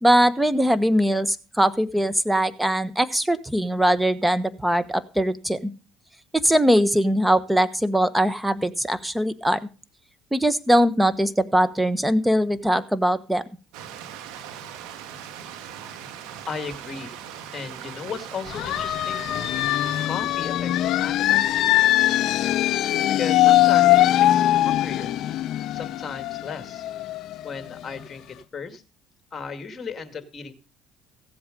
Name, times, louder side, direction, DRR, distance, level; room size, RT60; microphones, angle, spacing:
voice 1, 0.0-5.7 6.4-9.6 10.3-13.4, equal, 5° right, 14 dB, 1.2 m, -21 dB
Stream, 13.7-20.1, right 9 dB, 80° right, 1.7 m, -39 dB
voice 2, 16.5-17.1 17.5-19.3 20.0-22.1 23.1-25.1 25.7-26.9 27.4-28.8 29.3-30.5, left 6 dB, 35° left, 9 dB, 2.3 m, -36 dB
sound 1, 18.5-28.0, left 14 dB, 65° left, 0.6 m, -21 dB
16.0 x 7.9 x 5.3 m, 0.34 s
supercardioid pair, 85°, 0 cm